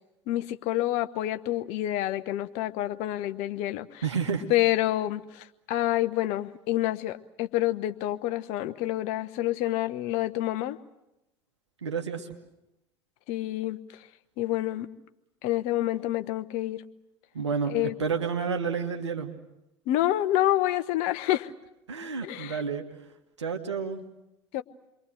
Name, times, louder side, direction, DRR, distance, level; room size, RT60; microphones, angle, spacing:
voice 1, 0.3-4.0 4.5-10.8 13.3-14.1 14.4-14.9 15.4-16.8 17.7-17.9 19.9-21.5 22.2-22.6 24.5-24.6, left 14 dB, 55° left, 10 dB, 1.1 m, -28 dB
voice 2, 4.0-4.5 11.8-12.3 17.3-17.7 18.0-19.3 21.9-22.8 23.4-24.0, right 6 dB, 80° right, 4 dB, 2.0 m, -30 dB
28.5 x 23.0 x 7.9 m, 0.92 s
figure-of-eight pair, 65°, 14 cm